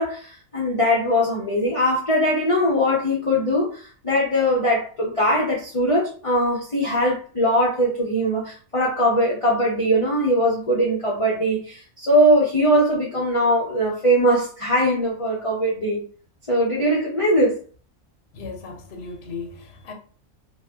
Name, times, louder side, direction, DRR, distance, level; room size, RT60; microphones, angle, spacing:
voice 1, 0.0-16.0 16.5-17.6, equal, 35° left, 0.6 m, -21 dB
voice 2, 18.3-19.9, left 4 dB, 60° left, 0.8 m, -36 dB
2.5 x 2.2 x 3.3 m
omnidirectional pair, 1.4 m